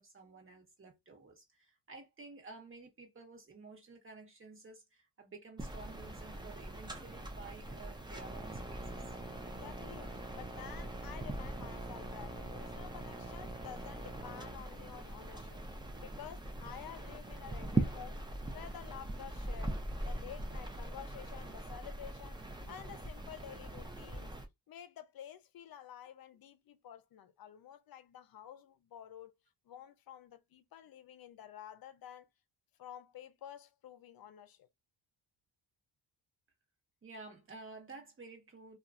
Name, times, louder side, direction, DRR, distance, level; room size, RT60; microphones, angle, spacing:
voice 1, 0.0-9.1 37.0-38.8, right 3 dB, 30° right, 1.2 m, -52 dB
sound 1, 5.6-24.4, right 2 dB, 10° right, 0.5 m, -41 dB
voice 2, 9.5-15.7 16.0-19.8 20.0-22.4 22.7-24.4 24.7-29.3 29.6-32.3 32.8-34.7, left 9 dB, 55° left, 0.6 m, -51 dB
2.8 x 2.4 x 2.4 m
cardioid pair, 110°, 43 cm